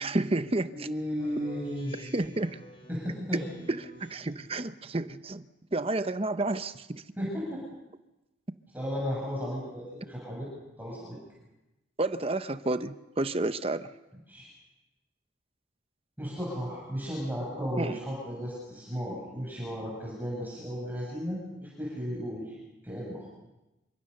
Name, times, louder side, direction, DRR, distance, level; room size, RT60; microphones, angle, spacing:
voice 1, 0.0-0.9 2.0-2.6 3.3-3.4 3.7-5.4 5.7-7.0 12.0-13.9 17.8-18.0, right 2 dB, 30° right, 11 dB, 0.8 m, -30 dB
voice 2, 0.7-1.9 2.9-3.4 7.2-7.6 8.7-10.5 10.8-11.2 14.3-14.5 16.2-22.6 22.8-23.3, equal, 10° right, -4 dB, 7.6 m, -34 dB
Speech synthesizer, 1.2-4.5, right 1 dB, 30° left, 7.6 m, -50 dB
28.0 x 25.5 x 6.8 m, 0.99 s
head